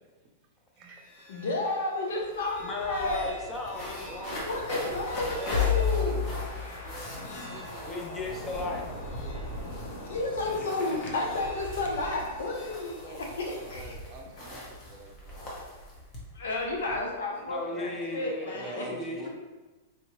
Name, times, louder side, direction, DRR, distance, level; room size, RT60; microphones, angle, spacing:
sound 1, 0.8-13.7, left 7 dB, 50° left, 0.8 m, -36 dB
voice 1, 0.8-1.3 4.1-4.2 4.8-5.0 5.3-8.0 13.0-15.7 18.5-19.3, right 3 dB, 35° right, 1 dB, 0.6 m, -46 dB
voice 2, 1.3-3.3 4.0-6.2 10.0-14.0 16.3-18.9, left 2 dB, 85° left, 0 dB, 0.8 m, -32 dB
sound 2, 2.2-2.3 2.5-17.0, equal, 30° left, 1.0 m, -41 dB
voice 3, 2.6-5.0 7.9-9.6 17.5-19.2, left 2 dB, 15° left, 0 dB, 0.6 m, -37 dB
3.6 x 2.8 x 3.0 m, 1.2 s
hypercardioid pair, 145°, 0 cm